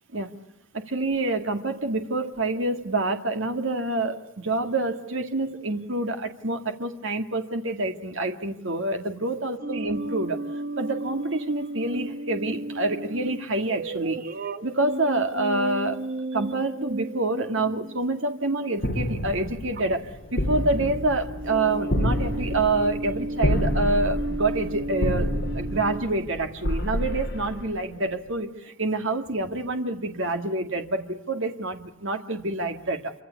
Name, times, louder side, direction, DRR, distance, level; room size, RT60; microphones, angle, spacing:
voice 1, 0.7-10.4 10.8-14.2 14.6-16.0 16.3-33.1, right 2 dB, 55° right, 6 dB, 2.1 m, -27 dB
sound 1, 9.6-19.0 19.8-20.1 20.4-26.1, right 2 dB, 40° right, 1.1 m, -34 dB
sound 2, 18.8-28.1, equal, 45° left, 4.8 m, -29 dB
27.0 x 25.0 x 8.4 m, 0.81 s
head